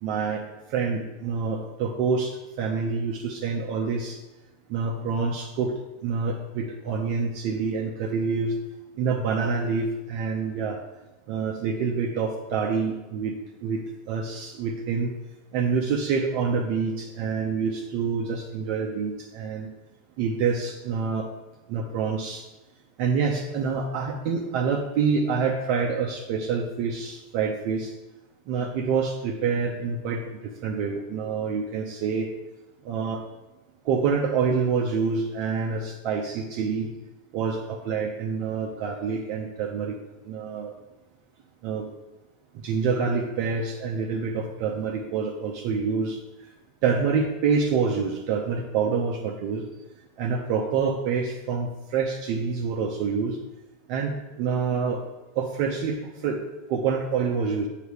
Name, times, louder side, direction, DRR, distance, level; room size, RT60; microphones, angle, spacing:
voice 1, 0.0-0.4 0.7-4.2 4.7-5.7 6.0-8.6 9.0-10.8 11.3-13.3 13.6-13.8 14.1-15.1 15.5-19.7 20.2-21.3 21.7-22.4 23.0-27.9 28.5-32.3 32.8-33.2 33.8-36.9 37.3-40.0 40.2-40.7 41.6-41.9 42.5-46.5 46.8-49.6 50.2-53.4 53.9-55.0 55.3-56.4 56.7-57.7, right 5 dB, 55° right, 0 dB, 0.7 m, -27 dB
7.9 x 2.9 x 4.8 m, 1.0 s
hypercardioid pair, 90°, 0 cm